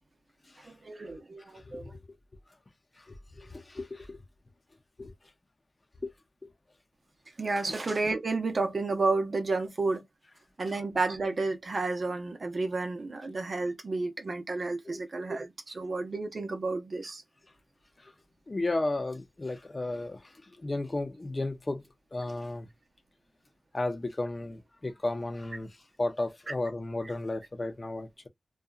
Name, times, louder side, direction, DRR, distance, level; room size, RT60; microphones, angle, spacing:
voice 1, 0.7-2.0 7.4-10.0 10.6-17.2, right 3 dB, 60° right, 0.7 m, -31 dB
voice 2, 1.5-2.0 3.1-4.2 5.0-5.1 6.0-6.1 6.4-6.5 7.7-7.8 14.8-15.0 18.0-18.1 18.5-20.2 20.6-21.8 22.1-22.7 23.7-25.7 26.0-28.3, left 2 dB, 40° left, 0.6 m, -34 dB
2.7 x 2.3 x 2.3 m
wide cardioid pair, 60°, 0 cm